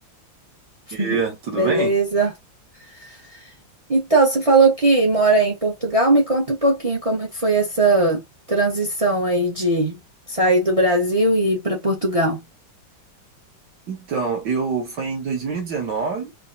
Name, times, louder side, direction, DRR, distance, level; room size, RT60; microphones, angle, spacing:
voice 1, 0.9-1.9 13.9-16.3, right 5 dB, 65° right, 1.9 m, -25 dB
voice 2, 1.5-2.3 3.0-3.1 3.9-8.2 8.5-10.0 10.3-12.4, right 2 dB, 40° right, 0.5 m, -19 dB
4.5 x 2.3 x 2.5 m
omnidirectional pair, 2.0 m